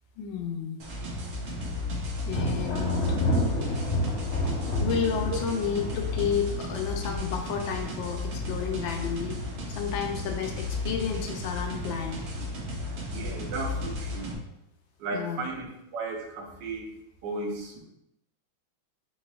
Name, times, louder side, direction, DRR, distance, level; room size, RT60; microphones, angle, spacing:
voice 1, 0.2-0.8 2.3-3.2 4.8-9.4 9.8-12.2 15.1-15.5, left 7 dB, 75° left, 3 dB, 1.4 m, -31 dB
sound 1, 0.8-14.3, left 2 dB, 90° right, 1.8 m, -34 dB
Thunder, 2.3-8.7 9.1-9.7 10.1-10.9, left 1 dB, 50° left, 1.2 m, -31 dB
voice 2, 13.1-14.4 15.0-16.9 17.2-17.8, right 3 dB, 65° right, 0 dB, 1.4 m, -35 dB
4.6 x 4.2 x 2.4 m, 0.85 s
omnidirectional pair, 2.2 m